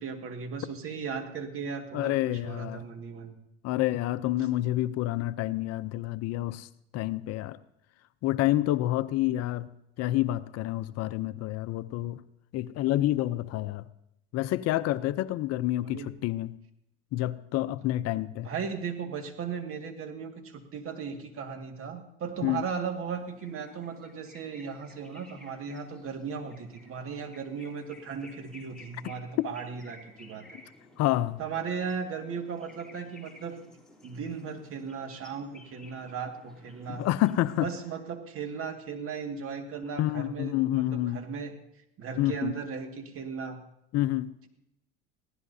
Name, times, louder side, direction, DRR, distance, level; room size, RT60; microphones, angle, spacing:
voice 1, 0.0-3.4 15.8-16.1 18.4-30.6 31.4-33.6 34.0-37.1 37.6-41.5 42.0-43.6, right 6 dB, 45° right, 5 dB, 2.0 m, -36 dB
voice 2, 1.9-2.8 3.6-7.6 8.2-9.7 10.0-12.2 12.5-13.8 14.3-16.5 17.1-18.5 22.4-22.6 29.4-29.5 31.0-31.4 36.9-37.7 40.0-41.2 42.2-42.5 43.9-44.3, left 15 dB, 55° left, 14 dB, 0.6 m, -28 dB
sound 1, 23.1-37.8, left 2 dB, ahead, 3.3 m, -55 dB
22.0 x 16.0 x 2.7 m, 0.81 s
supercardioid pair, 95°, 30 cm